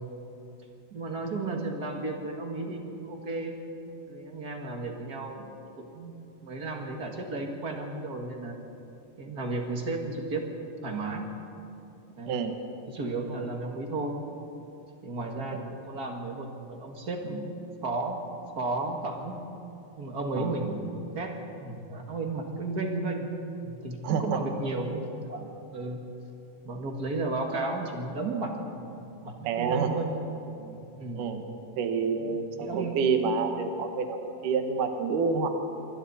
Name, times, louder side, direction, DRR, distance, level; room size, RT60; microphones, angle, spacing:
voice 1, 0.9-3.6 4.1-6.2 6.4-8.6 9.2-10.4 10.8-11.3 12.2-12.4 12.9-14.2 15.0-17.5 17.8-18.2 18.6-19.4 20.0-23.3 23.6-26.0 26.6-28.7 29.2-30.2 30.6-31.3 32.2-33.0, right 2 dB, 40° right, 2 dB, 1.6 m, -33 dB
voice 2, 12.3-12.6 20.4-20.6 24.0-24.4 29.4-29.9 31.2-31.4 31.8-35.5, right 5 dB, 65° right, 5 dB, 2.8 m, -28 dB
27.0 x 23.5 x 4.2 m, 2.9 s
omnidirectional pair, 4.1 m